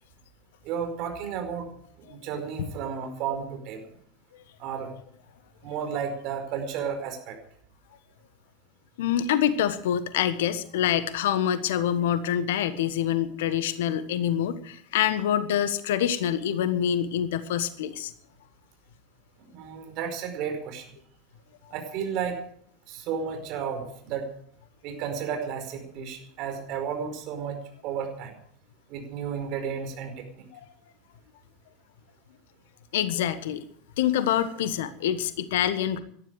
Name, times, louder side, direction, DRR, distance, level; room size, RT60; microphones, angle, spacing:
voice 1, 0.6-1.7 2.0-3.9 4.6-4.9 5.6-7.4 19.5-20.9 21.7-22.4 22.9-24.3 24.8-28.3 28.9-30.4, right 7 dB, 50° right, 5 dB, 4.9 m, -33 dB
voice 2, 9.0-18.1 32.9-33.6 34.0-36.0, left 10 dB, 65° left, 13 dB, 1.4 m, -26 dB
19.0 x 13.0 x 5.0 m, 0.63 s
figure-of-eight pair, 75°, 0 cm